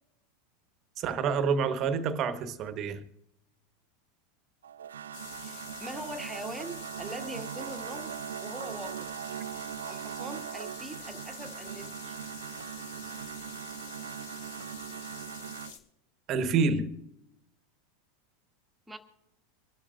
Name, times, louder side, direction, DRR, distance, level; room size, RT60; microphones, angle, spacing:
voice 1, 1.0-3.0 16.3-17.0, right 5 dB, 40° right, 1.3 m, -28 dB
sound 1, 4.6-15.7, right 10 dB, 75° right, 0.4 m, -40 dB
sound 2, 5.1-15.8, left 6 dB, 60° left, 1.7 m, -47 dB
voice 2, 5.4-8.1 8.4-9.1 9.9-12.2 18.9-19.0, equal, 5° right, 1.7 m, -42 dB
26.5 x 12.5 x 2.6 m
figure-of-eight pair, 85°, 0 cm